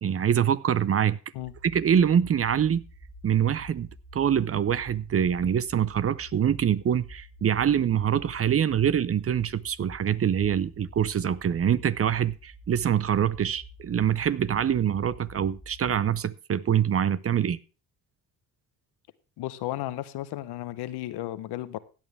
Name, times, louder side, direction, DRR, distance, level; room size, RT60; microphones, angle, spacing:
voice 1, 0.0-1.2 1.6-2.8 3.2-3.9 4.1-17.6, right 9 dB, 35° right, 0.6 m, -24 dB
sound 1, 1.4-16.2, equal, 80° right, 3.1 m, -48 dB
voice 2, 19.4-21.8, left 15 dB, 80° left, 0.9 m, -34 dB
16.0 x 8.8 x 3.4 m
supercardioid pair, 70°, 39 cm